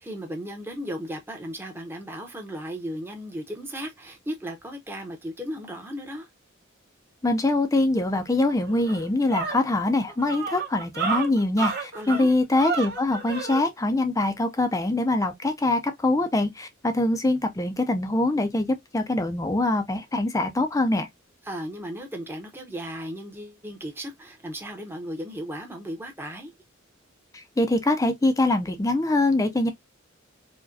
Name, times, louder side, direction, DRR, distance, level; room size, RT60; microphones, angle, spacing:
voice 1, 0.0-6.3 11.9-12.3 21.4-26.5, equal, 10° right, 0.7 m, -36 dB
voice 2, 7.2-18.7 18.9-21.1 27.6-29.7, left 2 dB, 15° left, 0.4 m, -23 dB
sound 1, 8.2-8.3 8.7-13.6, right 5 dB, 55° right, 1.3 m, -31 dB
4.6 x 2.2 x 2.5 m
head